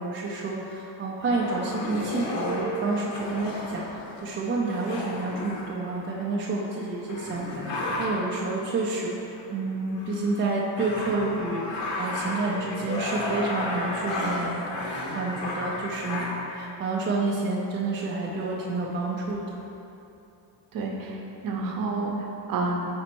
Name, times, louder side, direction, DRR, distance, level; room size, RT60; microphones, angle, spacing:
voice 1, 0.0-9.1 9.5-19.6, right 3 dB, 30° right, -3 dB, 0.3 m, -29 dB
sound 1, 1.2-6.2 6.8-6.9 7.1-8.4 9.1-9.4 9.8-16.6 17.4-17.5 17.8-18.5, left 1 dB, 70° left, 1.0 m, -33 dB
voice 2, 20.7-22.9, right 3 dB, 45° right, 0 dB, 0.7 m, -30 dB
5.0 x 4.2 x 4.4 m, 2.9 s
cardioid pair, 175°, 45 cm